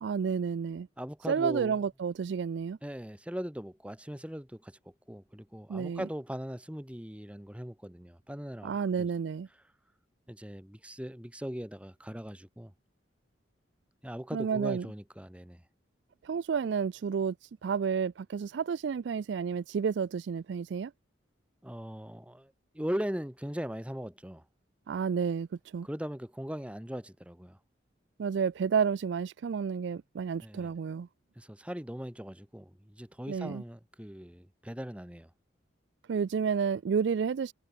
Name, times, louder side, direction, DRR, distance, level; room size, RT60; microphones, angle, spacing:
voice 1, 0.0-0.9 1.3-2.8 5.7-6.1 8.6-9.5 14.3-14.9 16.2-20.9 24.9-25.5 25.7-25.9 28.2-31.1 33.3-33.6 36.1-37.5, right 6 dB, 65° right, 0.3 m, -30 dB
voice 2, 1.0-1.8 2.8-8.7 9.0-9.1 10.3-12.7 14.0-15.6 21.6-24.4 25.8-27.6 30.4-30.7 31.4-35.3, equal, 5° right, 1.4 m, -39 dB
head